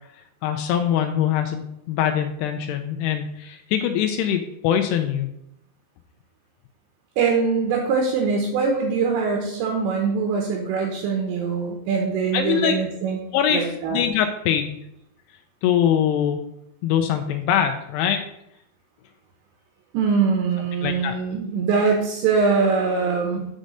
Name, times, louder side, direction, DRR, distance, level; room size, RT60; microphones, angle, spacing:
voice 1, 0.1-5.3 12.3-12.8 13.3-14.8 15.6-16.4 16.8-18.2 20.8-21.2, left 9 dB, 85° left, 6 dB, 2.3 m, -23 dB
voice 2, 7.2-13.2 13.5-14.0 19.9-23.5, right 5 dB, 75° right, 1 dB, 3.1 m, -22 dB
6.5 x 5.4 x 6.2 m, 0.79 s
omnidirectional pair, 5.3 m